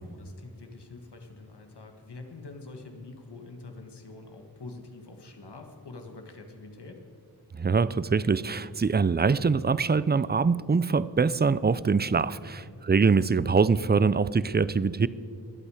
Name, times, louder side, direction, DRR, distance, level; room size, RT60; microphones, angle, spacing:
voice 1, 0.0-7.0 12.5-12.8, left 3 dB, 90° left, 4 dB, 1.6 m, -45 dB
voice 2, 7.5-15.1, right 5 dB, 25° right, 18 dB, 0.5 m, -24 dB
22.5 x 8.5 x 4.9 m, 2.3 s
wide cardioid pair, 45°, 39 cm